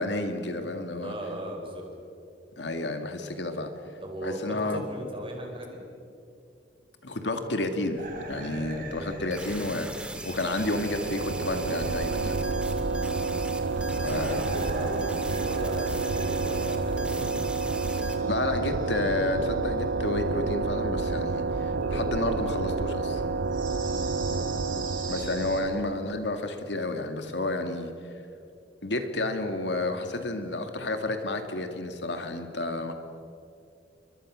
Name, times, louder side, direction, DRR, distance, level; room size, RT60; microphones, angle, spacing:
voice 1, 0.0-1.1 2.6-3.7 4.2-4.8 7.0-8.0 8.3-12.4 14.0-14.5 18.2-23.2 25.1-27.9 28.8-32.9, left 2 dB, 70° left, 6 dB, 2.2 m, -31 dB
voice 2, 1.0-1.9 4.0-5.8 12.9-13.2 14.0-17.3 23.8-24.1, equal, 30° right, 1 dB, 5.0 m, -37 dB
sound 1, 8.0-25.6, right 2 dB, 50° right, 5.1 m, -41 dB
sound 2, 9.3-18.2, right 1 dB, 5° right, 2.1 m, -41 dB
sound 3, 10.4-26.2, right 3 dB, 75° right, 0.8 m, -30 dB
29.5 x 23.0 x 6.3 m, 2.6 s
head